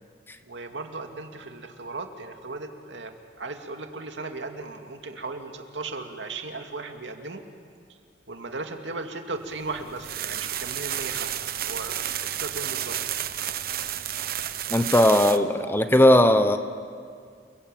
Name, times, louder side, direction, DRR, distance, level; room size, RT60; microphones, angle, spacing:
voice 1, 0.4-7.4 8.3-13.0, right 3 dB, 80° right, 5 dB, 2.4 m, -36 dB
sound 1, 9.6-15.4, right 11 dB, 55° right, 1.0 m, -31 dB
voice 2, 14.7-16.6, left 1 dB, 10° left, 9 dB, 1.0 m, -18 dB
29.0 x 22.0 x 9.1 m, 2.1 s
head